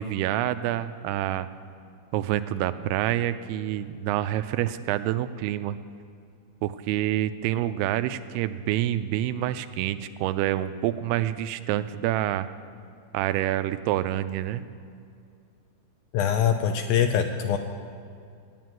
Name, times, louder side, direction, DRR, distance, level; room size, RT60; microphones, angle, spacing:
voice 1, 0.0-1.5 2.1-5.8 6.6-12.5 13.1-14.6, right 13 dB, 85° right, 11 dB, 2.5 m, -27 dB
voice 2, 16.1-17.6, left 8 dB, 80° left, 6 dB, 2.2 m, -23 dB
13.5 x 9.5 x 9.0 m, 2.3 s
omnidirectional pair, 4.7 m